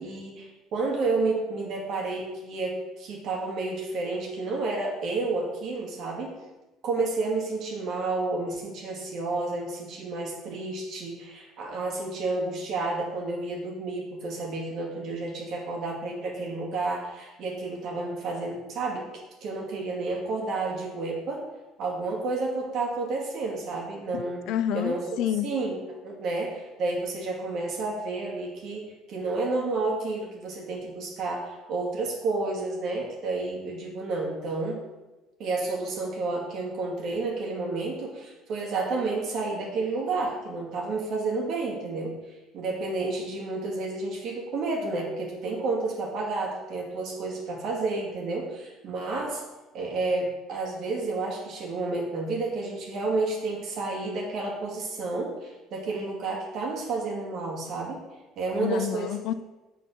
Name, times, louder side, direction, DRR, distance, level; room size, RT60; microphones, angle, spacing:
voice 1, 0.0-6.4 6.8-21.4 21.8-24.4 24.7-25.0 25.4-34.8 35.4-49.4 49.7-58.0 58.4-59.1, right 3 dB, 60° right, -2 dB, 2.1 m, -30 dB
voice 2, 24.1-25.5 58.6-59.3, left 11 dB, 70° left, 12 dB, 0.4 m, -29 dB
7.0 x 4.1 x 6.0 m, 1.1 s
hypercardioid pair, 65°, 0 cm